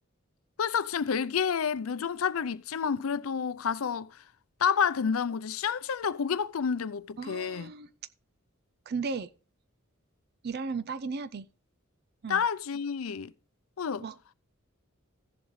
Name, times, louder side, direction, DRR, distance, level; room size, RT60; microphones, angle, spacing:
voice 1, 0.6-4.1 4.6-7.7 12.3-13.3 13.8-14.0, left 7 dB, 90° left, 0.5 m, -29 dB
voice 2, 7.2-7.9 8.9-9.3 10.4-11.5 12.2-12.4 14.0-14.3, right 4 dB, 50° right, 0.4 m, -35 dB
15.0 x 7.2 x 3.2 m
head